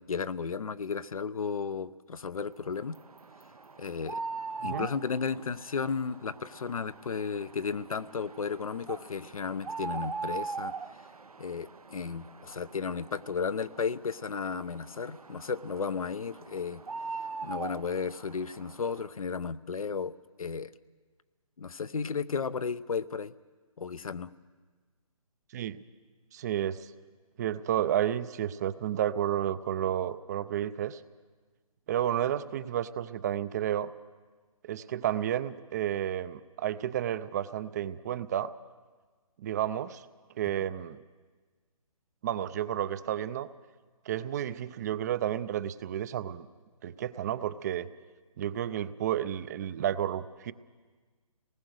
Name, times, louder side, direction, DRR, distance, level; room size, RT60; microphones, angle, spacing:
voice 1, 0.0-3.0 3.8-4.2 4.6-10.7 11.4-16.8 17.4-20.1 20.4-20.7 21.6-23.3 23.8-24.3, left 5 dB, 75° left, 14 dB, 0.8 m, -34 dB
sound 1, 2.7-19.1, right 4 dB, 85° right, 1.1 m, -42 dB
voice 2, 25.5-25.8 26.3-26.9 27.4-31.0 31.9-33.9 34.6-38.5 39.4-40.0 40.4-41.0 42.2-43.5 44.1-46.5 46.8-47.9 48.4-50.5, right 11 dB, 30° right, 15 dB, 0.6 m, -31 dB
26.5 x 19.5 x 6.5 m, 1.4 s
figure-of-eight pair, 145°, 18 cm